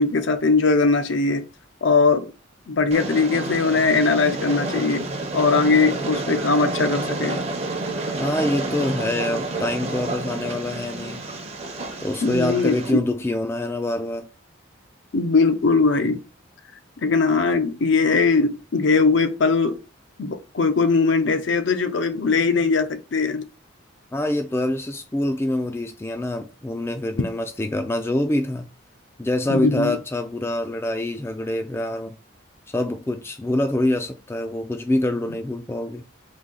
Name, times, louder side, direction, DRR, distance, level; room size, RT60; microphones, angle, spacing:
voice 1, 0.0-1.4 1.8-2.3 2.7-7.4 12.2-13.0 15.1-16.2 17.0-19.8 20.2-23.4 29.5-30.0, left 4 dB, 65° left, 0.5 m, -20 dB
Train, 2.9-12.9, right 2 dB, 30° right, 0.7 m, -29 dB
voice 2, 8.2-11.2 12.0-14.3 24.1-28.7 29.2-32.2 32.7-36.0, left 1 dB, 10° left, 0.3 m, -25 dB
4.1 x 2.7 x 3.8 m
head